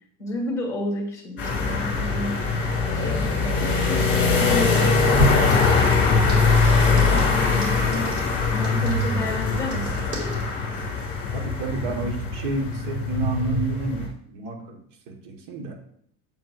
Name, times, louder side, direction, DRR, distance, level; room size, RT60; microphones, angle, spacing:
voice 1, 0.2-2.4 3.0-8.2 8.5-10.4 11.9-12.0, left 2 dB, 10° left, 2 dB, 1.9 m, -32 dB
sound 1, 1.4-14.1, left 4 dB, 35° left, 2.2 m, -22 dB
sound 2, 4.1-10.4, right 1 dB, 75° right, 2.6 m, -32 dB
voice 2, 11.3-14.8 15.1-15.8, right 3 dB, 60° right, 3 dB, 1.7 m, -30 dB
7.7 x 7.7 x 2.6 m, 0.65 s
cardioid pair, 150°, 35 cm